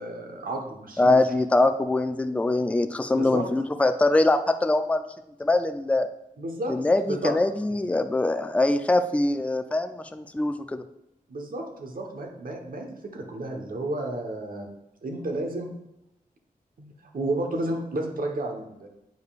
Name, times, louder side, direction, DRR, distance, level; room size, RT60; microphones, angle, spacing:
voice 1, 0.0-1.2 3.1-3.5 6.4-6.7 7.1-7.3 11.3-14.7 15.0-15.7 16.8-18.9, right 2 dB, 65° right, 2 dB, 1.1 m, -32 dB
voice 2, 1.0-5.0 5.4-6.1 6.7-10.8, left 2 dB, 10° left, 8 dB, 0.4 m, -23 dB
7.9 x 5.2 x 2.4 m, 0.84 s
wide cardioid pair, 75°, 15 cm